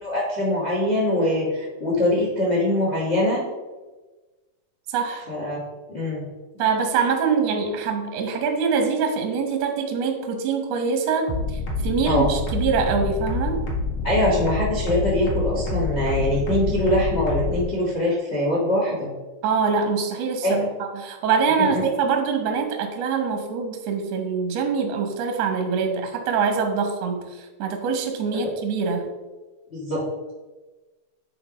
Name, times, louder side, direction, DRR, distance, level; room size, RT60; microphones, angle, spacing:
voice 1, 0.0-3.4 5.3-5.6 5.9-6.3 12.0-12.3 14.0-19.1 20.4-20.5 21.6-21.8 29.7-30.0, left 1 dB, 90° left, -5 dB, 0.5 m, -23 dB
voice 2, 4.9-5.2 6.6-13.6 19.4-27.3 27.6-29.0, right 5 dB, 70° right, 4 dB, 1.6 m, -24 dB
sound 1, 11.3-17.6, left 3 dB, 55° left, 1.5 m, -26 dB
9.7 x 3.4 x 5.0 m, 1.2 s
omnidirectional pair, 4.2 m